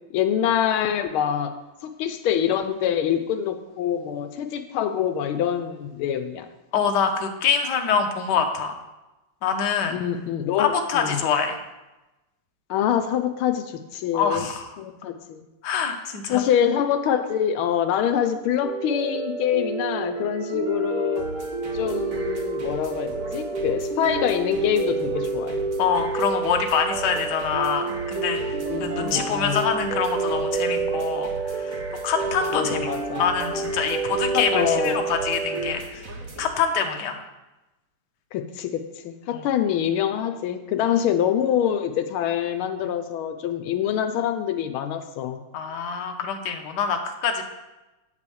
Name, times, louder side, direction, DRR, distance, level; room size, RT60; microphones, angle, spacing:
voice 1, 0.1-1.5 1.8-6.5 9.9-11.2 12.7-14.4 14.8-15.4 16.3-21.3 21.7-25.6 28.7-29.6 32.5-33.3 34.3-35.0 38.3-45.4, left 9 dB, 90° left, 8 dB, 1.5 m, -25 dB
voice 2, 6.7-8.7 9.4-10.0 10.6-11.6 14.1-14.7 15.6-16.4 25.8-32.9 33.2-36.0 36.4-37.2 39.3-39.4 40.8-40.9 45.5-47.4, left 6 dB, 60° left, 4 dB, 1.5 m, -25 dB
sound 1, 18.6-35.7, right 4 dB, 65° right, 0.4 m, -29 dB
sound 2, 21.2-36.5, right 2 dB, 45° right, 1.6 m, -40 dB
9.0 x 4.9 x 7.0 m, 1.0 s
omnidirectional pair, 2.3 m